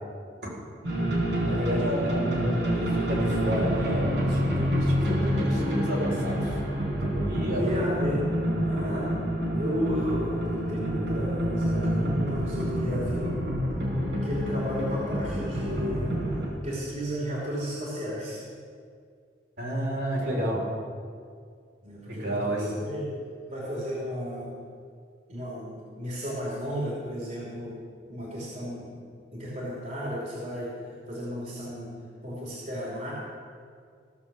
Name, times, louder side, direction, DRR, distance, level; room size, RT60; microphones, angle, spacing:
sound 1, 0.8-16.5, equal, 85° right, 4.3 m, -28 dB
voice 1, 0.9-1.7 7.5-8.3 8.6-9.1 9.6-13.3 14.2-16.1 16.6-18.4 21.8-23.2 23.5-24.5 25.3-27.7 28.1-28.9 29.3-30.7 31.1-31.9 32.2-33.1, equal, 45° right, -5 dB, 3.0 m, -33 dB
voice 2, 1.4-6.5 7.0-7.8 19.6-20.6 22.1-22.7, equal, 65° right, -4 dB, 4.1 m, -30 dB
16.0 x 7.5 x 7.1 m, 2.1 s
head